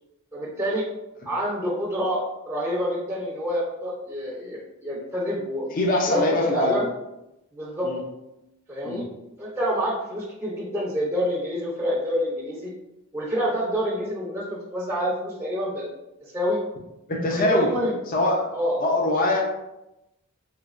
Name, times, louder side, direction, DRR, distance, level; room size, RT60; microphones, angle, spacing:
voice 1, 0.3-0.8 1.2-2.2 2.5-5.6 6.1-6.8 7.5-7.9 8.7-9.0 9.4-12.7 13.1-15.9 16.2-16.6 17.3-17.9 18.5-18.8, equal, 10° right, -7 dB, 0.5 m, -27 dB
voice 2, 5.7-6.8 7.8-8.0 8.8-9.0 17.1-17.7 18.1-18.5 18.8-19.4, left 1 dB, 40° left, 0 dB, 0.5 m, -23 dB
3.3 x 3.1 x 2.4 m, 0.91 s
head